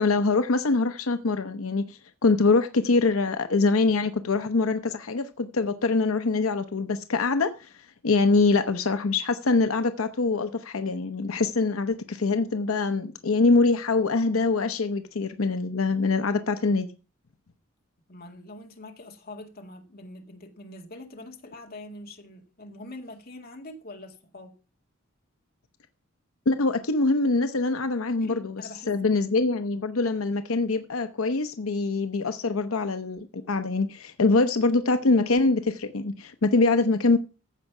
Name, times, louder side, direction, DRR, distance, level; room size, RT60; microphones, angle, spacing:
voice 1, 0.0-7.7 8.0-16.9 26.5-37.2, left 3 dB, 85° left, 0.8 m, -24 dB
voice 2, 18.1-24.5 28.2-29.0, left 2 dB, 45° left, 2.0 m, -44 dB
15.0 x 5.5 x 5.9 m
head